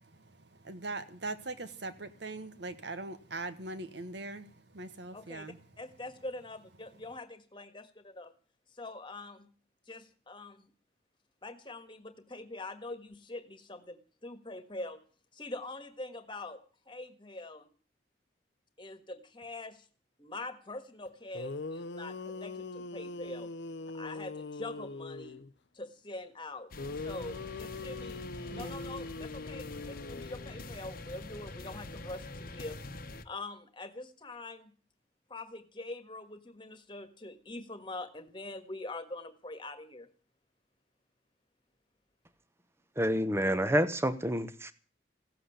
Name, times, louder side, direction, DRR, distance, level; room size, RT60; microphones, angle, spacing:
voice 1, 0.0-5.6 28.4-28.8, right 2 dB, 65° right, 1.5 m, -41 dB
voice 2, 5.1-8.3 8.7-9.5 9.9-10.7 11.4-15.0 15.3-16.6 16.9-17.7 18.8-19.9 20.2-23.5 23.9-25.4 25.7-28.2 28.5-32.8 33.2-34.7 35.3-40.1, left 2 dB, 25° left, 1.6 m, -44 dB
sound 1, 21.1-21.2 21.3-25.5 26.8-30.8, left 3 dB, 70° left, 0.7 m, -42 dB
sound 2, 26.7-33.2, left 2 dB, 50° left, 1.1 m, -45 dB
voice 3, 43.0-44.7, equal, 15° right, 0.9 m, -28 dB
16.5 x 7.7 x 10.0 m
head